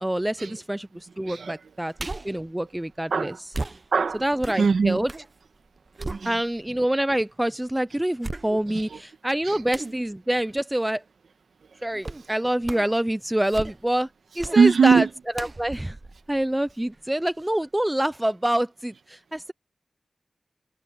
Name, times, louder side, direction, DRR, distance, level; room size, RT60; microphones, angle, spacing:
voice 1, 0.0-1.9 2.2-3.3 4.2-5.1 6.2-11.0 11.8-14.1 14.4-15.1 15.4-16.0 16.3-19.5, right 1 dB, 10° right, 0.4 m, -26 dB
voice 2, 1.2-1.6 3.1-3.4 3.9-4.2 4.6-5.0 6.0-6.4 8.5-9.0 9.4-9.6 14.5-15.1, right 5 dB, 90° right, 1.6 m, -21 dB
sound 1, 2.0-2.4 3.5-5.3 5.7-6.8 7.3-7.4 8.2-8.9 9.7-10.0 12.0-12.3 12.6-13.0 13.4-14.0 14.4-14.7 15.3-17.0 17.4-17.5, right 2 dB, 30° right, 0.8 m, -36 dB
wide cardioid pair, 115°, 0 cm